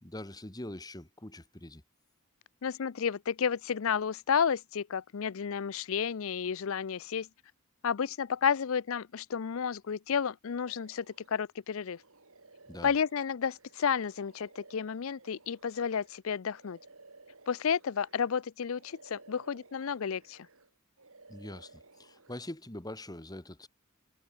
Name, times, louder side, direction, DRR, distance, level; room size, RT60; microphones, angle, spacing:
voice 1, 0.0-1.8 12.7-12.9 21.3-23.7, left 1 dB, 15° left, 1.6 m, -43 dB
voice 2, 2.6-7.3 7.8-12.0 12.8-16.8 17.5-20.5, left 7 dB, 60° left, 0.5 m, -31 dB
sound 1, 10.5-11.4 11.8-18.4 18.7-20.7 21.0-22.4, right 3 dB, 65° right, 4.6 m, -57 dB
head